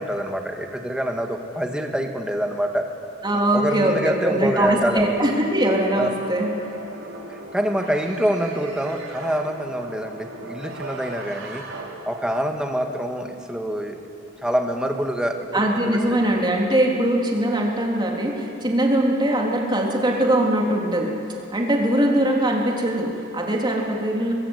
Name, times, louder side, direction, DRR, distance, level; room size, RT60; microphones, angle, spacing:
voice 1, 0.0-2.8 3.5-5.1 6.0-6.1 7.3-11.6 12.0-14.0 14.4-16.0, equal, 5° right, 3 dB, 1.8 m, -25 dB
voice 2, 3.2-6.5 15.5-21.1 21.5-24.3, right 1 dB, 20° right, -1 dB, 3.6 m, -21 dB
sound 1, 4.8-12.5, right 2 dB, 85° right, 4.8 m, -38 dB
24.5 x 21.5 x 8.2 m, 2.8 s
head